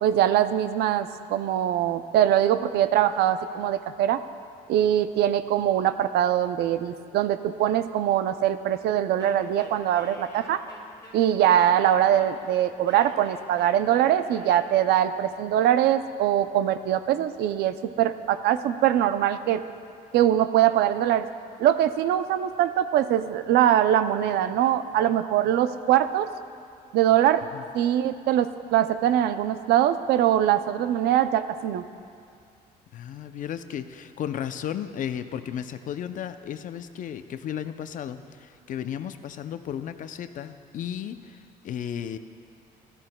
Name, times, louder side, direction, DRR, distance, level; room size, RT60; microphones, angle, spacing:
voice 1, 0.0-4.2 4.7-10.6 11.1-19.6 20.1-21.3 21.6-26.3 26.9-27.4 27.7-31.8, right 11 dB, 75° right, 12 dB, 0.5 m, -22 dB
Wind instrument woodwind instrument, 9.2-15.3, left 2 dB, 15° left, 2.5 m, -48 dB
voice 2, 32.9-42.2, left 9 dB, 50° left, 10 dB, 0.5 m, -34 dB
14.0 x 13.0 x 2.2 m, 2.4 s
cardioid pair, 110°, 17 cm